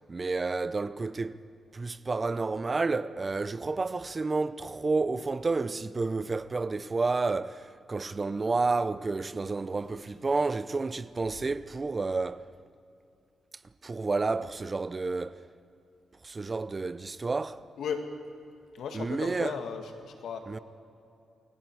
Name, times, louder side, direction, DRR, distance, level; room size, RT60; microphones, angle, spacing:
voice 1, 0.1-1.4 1.7-12.5 13.8-15.4 16.2-17.6 18.9-19.6 20.5-20.6, right 3 dB, 35° right, 0.7 m, -30 dB
voice 2, 18.7-20.4, left 6 dB, 85° left, 2.1 m, -35 dB
29.0 x 21.5 x 4.9 m
cardioid pair, 75°, 0 cm